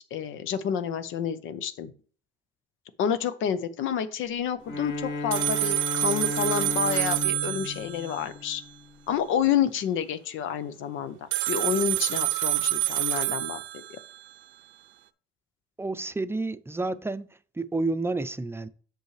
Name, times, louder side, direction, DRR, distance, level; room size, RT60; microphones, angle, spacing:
voice 1, 0.1-1.9 3.0-8.6 9.1-13.6 13.9-14.0, left 8 dB, 85° left, 0.7 m, -29 dB
Bowed string instrument, 4.6-8.9, left 3 dB, 70° left, 2.2 m, -34 dB
sound 1, 5.3-8.2 11.3-14.2, right 18 dB, 75° right, 0.6 m, -27 dB
voice 2, 15.8-17.3 17.6-18.7, right 2 dB, 10° right, 0.5 m, -30 dB
8.0 x 6.2 x 3.2 m
cardioid pair, 90°, 20 cm